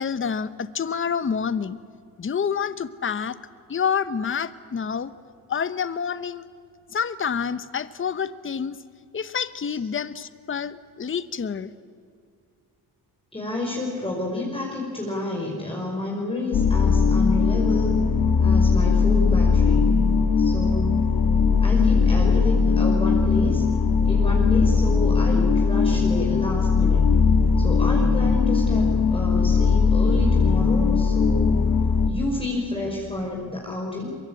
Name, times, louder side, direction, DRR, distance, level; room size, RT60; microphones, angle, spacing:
voice 1, 0.0-1.8 2.2-3.4 3.7-5.1 5.5-6.4 6.9-8.8 9.1-11.7, left 6 dB, 30° left, 14 dB, 1.0 m, -28 dB
voice 2, 13.3-17.9 18.4-19.8 20.4-21.2 21.6-23.6 24.0-27.1 27.6-31.7 32.1-34.1, left 2 dB, 15° left, -2 dB, 5.3 m, -30 dB
sound 1, 16.5-32.1, left 5 dB, 65° left, 1.9 m, -19 dB
23.5 x 23.0 x 8.9 m, 2.2 s
cardioid pair, 100°, 39 cm